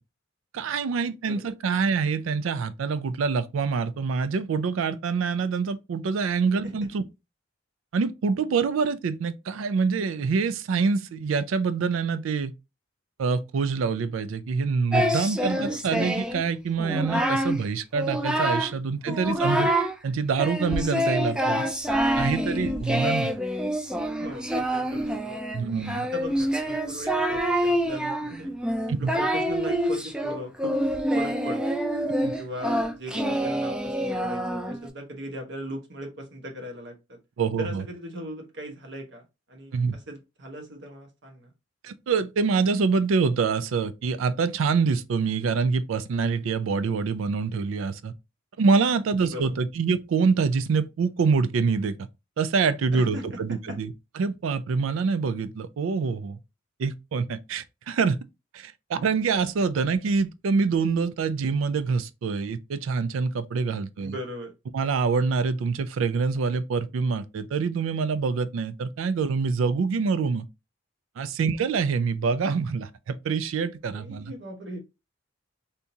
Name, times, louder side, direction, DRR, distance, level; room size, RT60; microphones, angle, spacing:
voice 1, 0.5-7.0 7.9-12.5 13.2-19.7 20.0-21.6 22.2-23.3 25.5-26.1 28.9-29.1 32.2-32.3 37.4-37.8 39.7-40.0 41.8-48.1 48.6-52.0 52.4-56.4 56.8-58.2 58.5-64.2 64.7-70.5 71.2-74.3, right 5 dB, 80° right, 0.4 m, -25 dB
Singing, 14.9-16.4 16.8-17.6 17.9-18.8 19.1-20.0 20.4-34.9, equal, 5° right, 0.4 m, -26 dB
voice 2, 24.2-25.6 26.1-28.5 29.0-30.8 31.1-31.8 32.4-37.2 37.6-41.5 49.2-49.6 52.9-53.4 53.7-53.8 64.0-64.5 73.9-74.8, equal, 60° right, 1.0 m, -38 dB
3.5 x 2.8 x 2.6 m
head